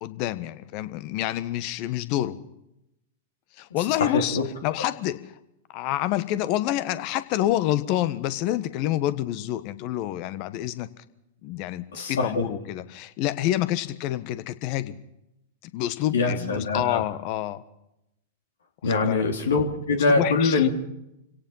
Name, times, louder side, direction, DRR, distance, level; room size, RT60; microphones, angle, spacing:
voice 1, 0.0-2.4 3.6-5.2 5.7-10.9 11.4-15.0 15.7-17.6 18.8-19.2 20.1-20.7, left 13 dB, 45° left, 14 dB, 1.3 m, -28 dB
voice 2, 4.0-4.4 11.9-12.4 16.1-17.0 18.8-20.7, left 4 dB, 70° left, 4 dB, 3.3 m, -23 dB
26.5 x 17.5 x 5.7 m, 0.84 s
figure-of-eight pair, 100°, 0 cm